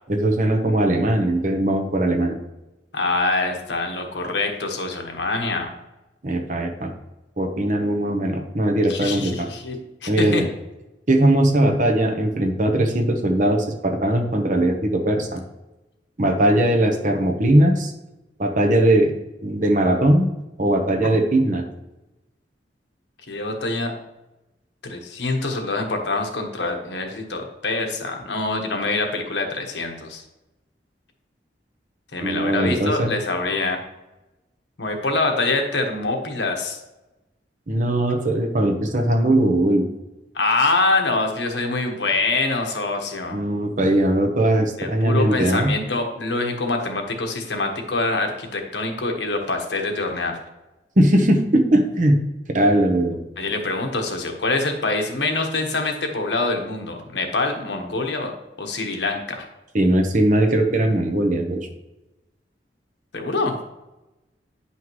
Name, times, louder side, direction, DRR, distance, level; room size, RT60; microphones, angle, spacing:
voice 1, 0.1-2.4 6.2-6.9 7.4-9.5 10.1-10.4 11.1-15.4 16.2-17.9 18.4-19.1 19.4-20.3 20.6-21.6 32.2-33.1 37.7-39.9 43.3-45.7 51.0-52.2 52.5-53.2 59.7-61.7, right 1 dB, 45° right, 5 dB, 1.0 m, -19 dB
voice 2, 2.9-5.7 8.9-10.4 23.3-23.9 24.8-30.2 32.1-33.8 34.8-36.8 40.3-43.4 44.8-50.4 53.4-58.3 58.6-59.5 63.1-63.6, left 3 dB, 75° left, 3 dB, 1.2 m, -25 dB
9.7 x 5.7 x 3.1 m, 1.0 s
head